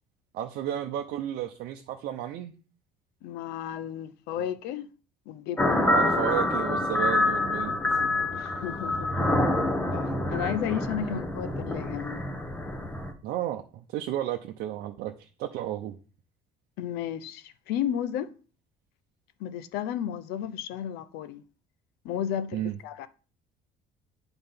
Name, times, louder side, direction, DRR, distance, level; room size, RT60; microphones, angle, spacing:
voice 1, 0.3-2.5 5.7-7.8 11.0-11.2 13.2-16.0 22.5-22.7, right 12 dB, 70° right, 0.7 m, -33 dB
voice 2, 3.2-4.9 5.3-5.8 8.3-9.3 9.9-12.2 16.8-18.3 19.4-21.4 22.0-23.1, left 10 dB, 85° left, 0.7 m, -33 dB
sound 1, 5.6-13.1, left 2 dB, 10° left, 0.9 m, -27 dB
8.8 x 3.9 x 5.5 m
cardioid pair, 145°, 16 cm